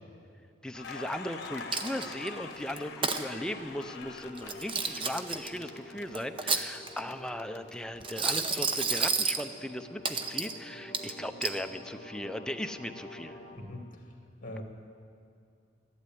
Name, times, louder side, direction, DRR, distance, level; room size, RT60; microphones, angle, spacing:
voice 1, 0.6-13.4, left 1 dB, 5° left, 7 dB, 0.5 m, -38 dB
Crackle, 0.7-6.6 6.9-8.6, left 4 dB, 60° left, 1.3 m, -45 dB
sound 1, 1.3-13.6, left 1 dB, 25° left, 2.2 m, -49 dB
Coin (dropping), 1.7-2.3 2.8-3.2 4.4-5.5 6.1-7.1 8.0-9.4 10.0-10.6 10.9-11.6, right 5 dB, 30° right, 0.8 m, -30 dB
voice 2, 13.5-14.6, left 1 dB, 45° left, 2 dB, 2.2 m, -43 dB
13.0 x 11.5 x 9.2 m, 2.4 s
head